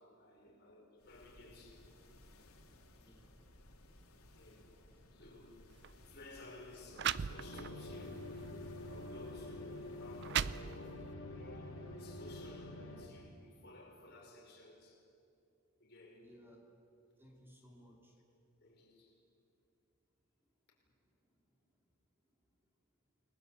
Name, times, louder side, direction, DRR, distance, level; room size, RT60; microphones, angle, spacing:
voice 1, 0.0-1.9 3.0-3.2 4.3-4.7 5.1-5.7 6.0-8.3 8.8-15.1 15.8-16.3 16.9-17.2 18.3-19.2, left 2 dB, 50° left, 5.7 m, -56 dB
sound 1, 1.0-10.8, left 1 dB, 90° left, 3.0 m, -61 dB
voice 2, 3.0-3.4 16.2-16.6 17.1-18.2 20.4-21.8 22.4-22.5, equal, 10° right, 2.9 m, -63 dB
sound 2, 5.7-5.9 6.6-6.7 7.0-7.9 8.4-8.6 9.4-9.5 10.0-11.1, right 9 dB, 50° right, 0.5 m, -37 dB
sound 3, 7.3-13.1, left 1 dB, 75° left, 3.7 m, -47 dB
29.5 x 21.0 x 8.2 m
head